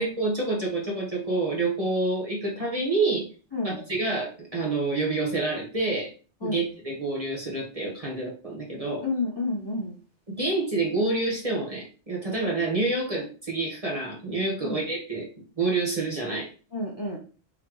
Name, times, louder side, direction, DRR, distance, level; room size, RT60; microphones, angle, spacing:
voice 1, 0.0-3.3 3.6-6.1 6.4-9.0 10.3-15.3 15.6-16.5, right 2 dB, 30° right, -3 dB, 1.2 m, -28 dB
voice 2, 3.5-3.8 6.4-6.6 9.0-10.0 14.6-14.9 16.7-17.2, left 2 dB, 25° left, -3 dB, 0.7 m, -30 dB
4.0 x 3.2 x 3.0 m, 0.37 s
omnidirectional pair, 1.2 m